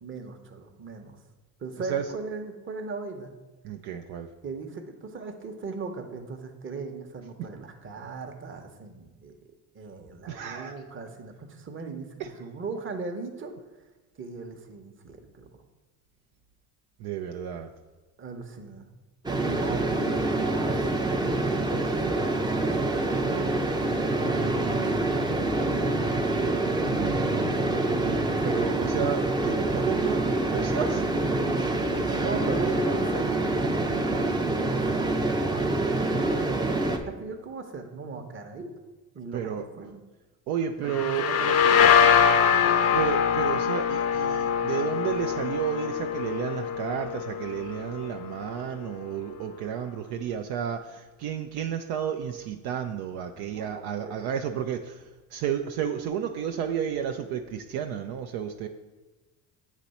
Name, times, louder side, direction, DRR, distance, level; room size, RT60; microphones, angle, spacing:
voice 1, 0.0-1.2 1.6-3.3 4.4-9.3 9.7-13.5 14.2-15.6 18.2-18.9 19.4-25.9 32.2-36.3 37.1-38.7 39.1-40.0 40.8-43.0 53.5-54.4, right 4 dB, 30° right, 5 dB, 0.9 m, -39 dB
voice 2, 3.6-4.3 10.3-10.7 17.0-17.7 26.8-31.1 39.3-39.7 40.5-41.3 42.9-55.0 55.3-58.7, right 8 dB, 65° right, 5 dB, 0.5 m, -32 dB
sound 1, 19.2-37.0, right 2 dB, 10° right, 0.5 m, -26 dB
sound 2, 40.9-48.5, left 7 dB, 40° left, 0.6 m, -23 dB
8.2 x 3.0 x 4.2 m, 1.2 s
supercardioid pair, 80°, 41 cm